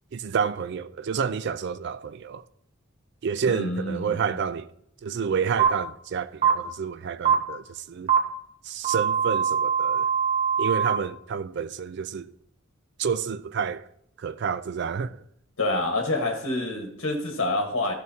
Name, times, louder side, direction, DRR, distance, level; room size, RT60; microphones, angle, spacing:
voice 1, 0.1-2.4 3.2-4.7 5.0-8.1 8.7-10.1 10.6-12.3 13.0-13.9 14.2-15.2, right 6 dB, 55° right, 0.3 m, -29 dB
voice 2, 3.5-4.4 15.6-17.9, left 2 dB, 70° left, 1.2 m, -27 dB
sound 1, 5.6-5.7 6.4-6.5 7.2-7.3 8.1-8.2 8.8-11.0, right 8 dB, 30° right, 1.1 m, -22 dB
12.5 x 6.1 x 2.7 m
head